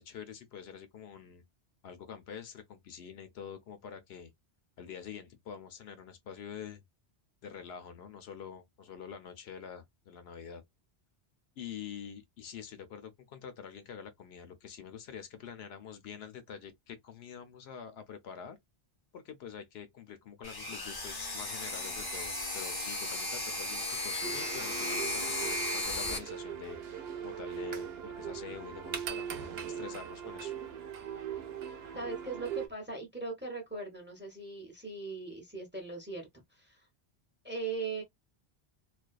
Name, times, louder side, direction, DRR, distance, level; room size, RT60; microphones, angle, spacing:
voice 1, 0.0-1.4 1.8-4.3 4.8-6.8 7.4-10.6 11.6-18.6 19.1-30.5, left 7 dB, 75° left, 0.8 m, -46 dB
sound 1, 20.4-26.2, left 2 dB, 25° left, 0.6 m, -35 dB
sound 2, 24.2-32.7, right 8 dB, 75° right, 0.8 m, -40 dB
voice 2, 31.9-36.2 36.5-36.9 37.4-38.0, right 3 dB, 10° right, 0.7 m, -39 dB
2.4 x 2.2 x 2.3 m
omnidirectional pair, 1.1 m